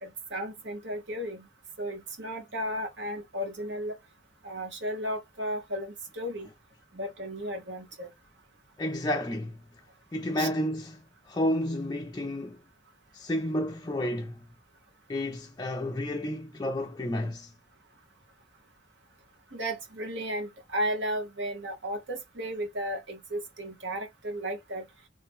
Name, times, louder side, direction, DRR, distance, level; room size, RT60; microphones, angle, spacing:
voice 1, 0.0-1.5 1.8-3.9 4.4-6.5 6.9-8.1 10.4-10.5 19.5-24.8, equal, 60° right, 1.3 m, -34 dB
voice 2, 8.8-9.6 10.1-11.0 11.3-12.6 13.1-14.3 15.1-17.5, left 1 dB, 20° left, 0.4 m, -31 dB
3.3 x 2.9 x 3.5 m
head